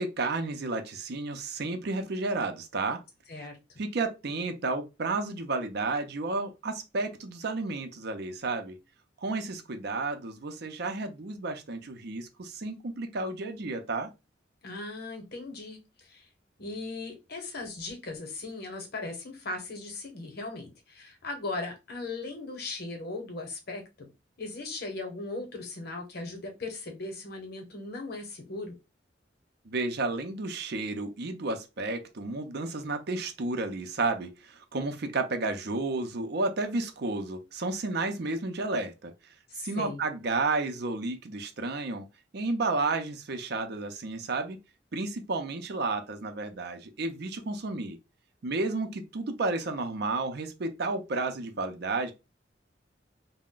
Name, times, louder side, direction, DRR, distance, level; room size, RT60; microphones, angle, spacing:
voice 1, 0.0-3.0 3.4-3.5 3.8-8.8 9.2-14.1 29.7-39.1 39.6-42.0 42.3-44.6 44.9-48.0 48.4-52.1, right 3 dB, 65° right, 0.6 m, -32 dB
voice 2, 14.6-16.3 16.6-24.1 24.4-28.7 39.5-40.0, left 3 dB, 60° left, 0.9 m, -38 dB
2.4 x 2.1 x 3.6 m
head